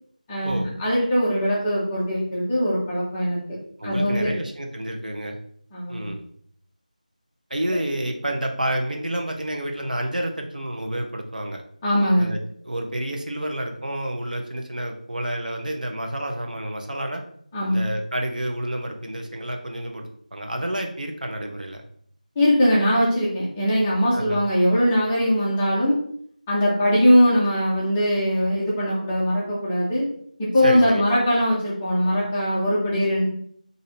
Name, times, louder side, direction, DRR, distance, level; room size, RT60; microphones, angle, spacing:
voice 1, 0.3-3.4 3.8-4.3 5.7-6.1 11.8-12.3 17.5-17.8 22.4-26.0 26.5-30.1 30.4-33.2, equal, 5° left, -7 dB, 0.4 m, -21 dB
voice 2, 3.8-5.4 5.9-6.2 7.5-11.6 12.2-12.4 12.6-17.2 17.7-21.8 24.1-24.4 30.6-31.0, right 1 dB, 75° right, 2 dB, 0.9 m, -29 dB
4.9 x 2.7 x 2.7 m, 0.63 s
figure-of-eight pair, 175°, 5 cm